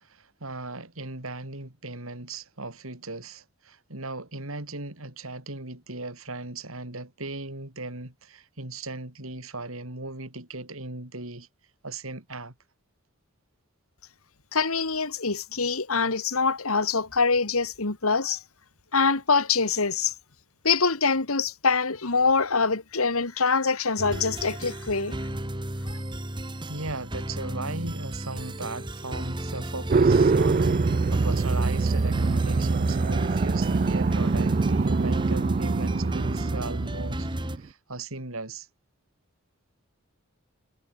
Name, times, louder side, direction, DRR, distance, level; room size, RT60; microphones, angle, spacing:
voice 1, 0.0-11.5 11.8-12.5 26.7-38.7, right 2 dB, 75° right, 4.2 m, -37 dB
voice 2, 14.5-18.4 18.9-20.1 20.6-25.2, left 4 dB, 80° left, 2.2 m, -24 dB
sound 1, 24.0-37.6, right 1 dB, 20° right, 1.8 m, -33 dB
sound 2, 29.9-37.6, right 4 dB, 35° right, 0.4 m, -24 dB
head